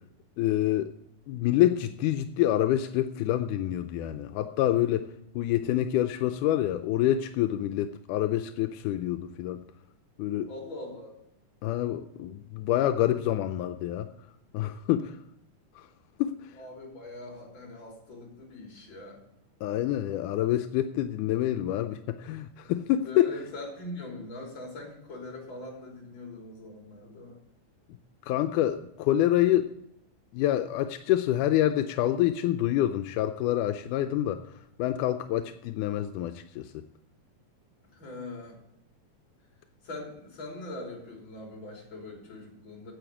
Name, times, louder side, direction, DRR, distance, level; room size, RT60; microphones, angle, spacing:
voice 1, 0.4-0.9 1.3-5.1 5.4-9.6 10.2-10.5 11.6-14.1 14.5-15.2 15.8-15.9 16.2-16.5 19.6-23.4 28.3-29.7 30.3-34.4 34.8-36.7, left 13 dB, 85° left, 8 dB, 2.1 m, -27 dB
voice 2, 10.5-11.1 16.5-19.2 23.0-27.4 37.9-38.6 39.8-42.9, left 2 dB, 40° left, 1 dB, 4.1 m, -42 dB
9.8 x 7.8 x 9.0 m, 0.82 s
omnidirectional pair, 3.5 m